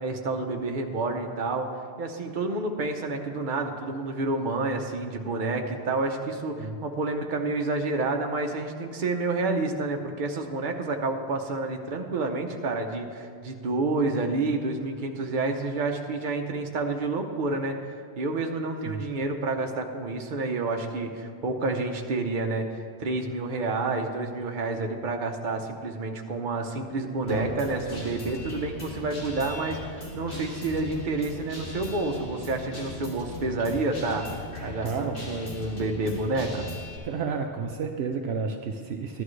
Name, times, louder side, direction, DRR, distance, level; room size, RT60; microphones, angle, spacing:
voice 1, 0.0-1.7 2.0-17.8 18.2-36.7, right 3 dB, 50° right, 3 dB, 1.0 m, -29 dB
voice 2, 27.2-27.6 34.8-35.2 37.0-39.2, right 5 dB, 70° right, 3 dB, 0.9 m, -31 dB
Guitar, 27.3-37.0, left 1 dB, 55° left, 2.1 m, -38 dB
14.5 x 11.0 x 3.2 m, 2.1 s
omnidirectional pair, 1.2 m